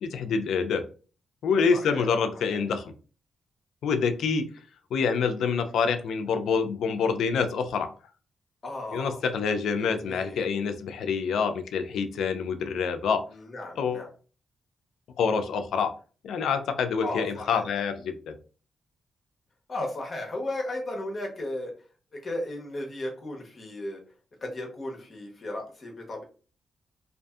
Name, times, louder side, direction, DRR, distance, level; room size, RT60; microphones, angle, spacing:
voice 1, 0.0-0.8 1.4-2.9 3.8-4.5 4.9-7.9 8.9-13.3 13.8-14.0 15.2-15.9 16.2-18.3, left 5 dB, 85° left, 8 dB, 0.4 m, -26 dB
voice 2, 1.7-2.1 2.5-2.6 8.6-9.2 9.8-10.5 13.3-14.1 17.0-17.7 19.7-21.7 22.1-24.0 24.4-26.2, left 1 dB, 40° left, 1 dB, 1.0 m, -35 dB
2.5 x 2.4 x 2.3 m, 0.37 s
cardioid pair, 100°, 0 cm